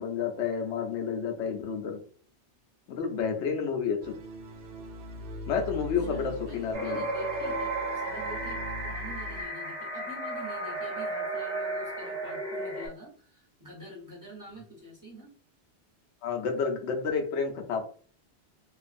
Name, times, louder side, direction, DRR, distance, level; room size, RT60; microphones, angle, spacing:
voice 1, 0.0-2.0 2.9-4.2 5.5-7.0 16.2-17.8, left 6 dB, 80° left, 3 dB, 0.9 m, -30 dB
sound 1, 4.0-9.4, left 1 dB, 75° right, 0.8 m, -41 dB
voice 2, 6.1-15.3, equal, 20° right, -4 dB, 1.0 m, -47 dB
sound 2, 6.7-12.9, right 2 dB, 45° right, 0.8 m, -33 dB
2.5 x 2.3 x 2.4 m, 0.43 s
omnidirectional pair, 1.2 m